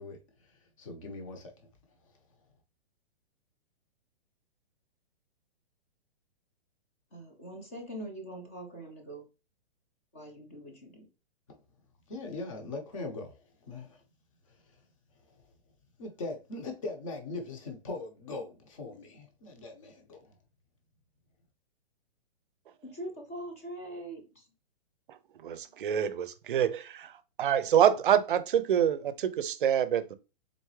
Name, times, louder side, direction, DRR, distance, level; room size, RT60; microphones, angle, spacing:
voice 1, 0.0-1.7 2.0-2.1 12.1-14.0 14.5-14.8 15.4-15.5 16.0-20.3, left 3 dB, 30° left, 0.9 m, -41 dB
voice 2, 7.1-9.2 10.1-11.1 22.8-24.5, right 1 dB, 15° left, 0.5 m, -42 dB
voice 3, 25.4-27.1 27.4-30.2, right 9 dB, 55° right, 0.5 m, -26 dB
4.0 x 3.3 x 3.1 m
hypercardioid pair, 175°, 31 cm